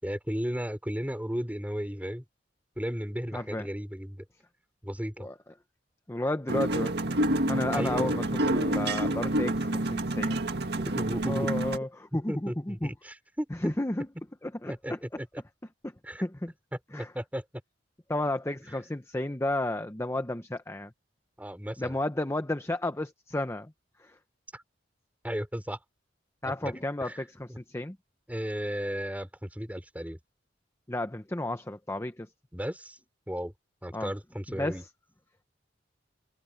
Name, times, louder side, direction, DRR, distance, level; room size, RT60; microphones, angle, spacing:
voice 1, 0.0-2.2 2.8-4.2 4.8-5.3 7.7-8.1 10.8-11.5 12.3-13.5 14.7-15.3 16.0-16.2 16.9-17.4 21.4-22.0 24.5-24.6 25.2-25.8 26.4-26.7 27.0-27.2 27.5-27.6 28.3-30.2 32.5-33.0 33.3-33.5 33.8-34.8, equal, 10° right, 3.9 m, -35 dB
voice 2, 3.3-3.7 5.2-5.3 6.1-7.0 7.5-10.4 11.2-12.9 13.6-14.1 14.4-15.0 15.8-16.5 16.9-17.1 18.1-20.9 21.8-23.7 24.0-24.2 26.4-28.0 30.9-32.3 33.9-34.1 34.5-34.9, left 1 dB, 15° left, 0.8 m, -32 dB
sound 1, 6.5-11.8, right 1 dB, 65° right, 2.0 m, -28 dB
head